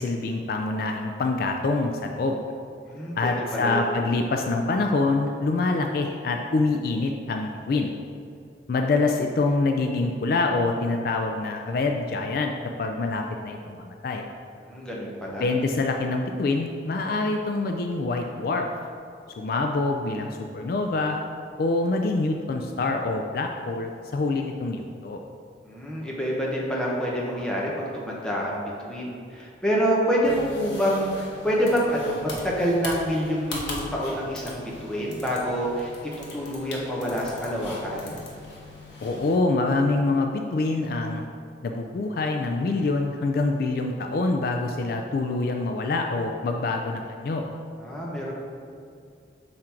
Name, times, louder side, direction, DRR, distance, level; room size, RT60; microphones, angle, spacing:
voice 1, 0.0-2.4 3.2-7.9 8.7-12.5 12.8-14.3 15.4-18.7 19.4-21.2 21.6-25.2 39.0-41.2 41.6-47.4, left 3 dB, 50° left, 3 dB, 0.3 m, -25 dB
voice 2, 2.9-3.9 14.6-15.4 25.6-35.9 36.2-38.2 47.8-48.3, equal, 5° left, -5 dB, 0.9 m, -27 dB
sound 1, 30.2-39.3, left 2 dB, 75° left, 1.1 m, -40 dB
5.8 x 3.8 x 4.4 m, 2.4 s
head